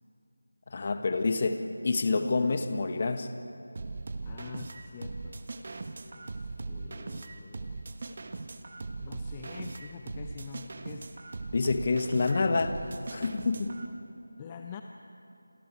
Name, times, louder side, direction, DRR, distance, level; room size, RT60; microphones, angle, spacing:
voice 1, 0.7-3.3 11.5-12.8 13.1-13.8, left 3 dB, 35° left, 8 dB, 1.4 m, -27 dB
sound 1, 3.8-13.9, right 3 dB, 40° right, 1.4 m, -39 dB
voice 2, 4.2-5.5 6.1-7.8 9.0-11.1 14.4-14.8, left 6 dB, 20° left, 5 dB, 0.7 m, -46 dB
29.0 x 27.5 x 4.7 m, 2.8 s
figure-of-eight pair, 165°, 0 cm